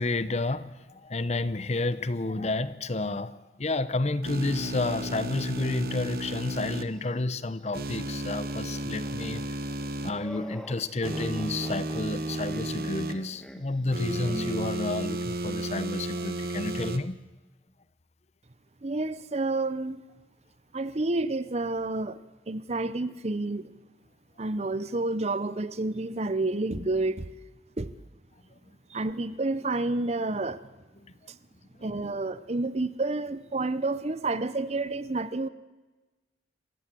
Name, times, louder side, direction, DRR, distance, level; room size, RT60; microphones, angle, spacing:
voice 1, 0.0-9.6 10.0-17.2, left 2 dB, 40° left, 0.8 m, -30 dB
sound 1, 4.2-6.8 7.7-10.1 11.0-13.1 13.9-17.0, right 1 dB, 55° right, 1.2 m, -33 dB
sound 2, 4.9-6.4 6.8-6.9 8.0-14.7, equal, 5° left, 1.4 m, -45 dB
voice 2, 18.8-20.0 20.7-22.2 22.5-23.7 24.4-27.3 27.8-27.9 28.9-30.6 31.3-31.4 31.8-35.5, right 2 dB, 40° right, 0.8 m, -29 dB
26.5 x 15.5 x 7.6 m
head